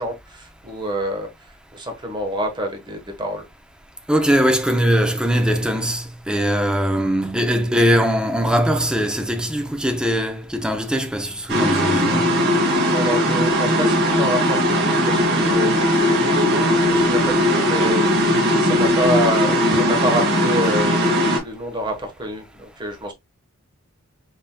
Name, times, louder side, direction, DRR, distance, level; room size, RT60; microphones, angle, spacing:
voice 1, 0.0-3.5 12.8-23.1, right 1 dB, 20° right, 1.1 m, -27 dB
voice 2, 4.1-12.3, equal, 5° right, 0.6 m, -20 dB
sound 1, 11.5-21.4, equal, 50° right, 2.0 m, -18 dB
5.6 x 3.9 x 2.2 m
head